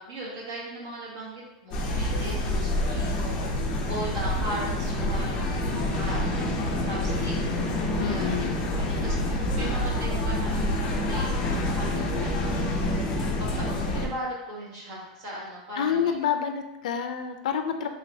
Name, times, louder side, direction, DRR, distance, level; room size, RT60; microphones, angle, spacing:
voice 1, 0.0-3.5 3.9-7.3 7.7-8.5 8.8-11.3 11.6-12.5 13.6-16.1 17.8-17.9, right 1 dB, 55° right, -5 dB, 1.4 m, -38 dB
sound 1, 1.7-14.1, left 1 dB, 25° left, 0.5 m, -27 dB
voice 2, 8.0-8.6 15.8-17.9, left 8 dB, 85° left, 7 dB, 0.3 m, -28 dB
3.9 x 3.0 x 2.6 m, 0.97 s
supercardioid pair, 170°, 4 cm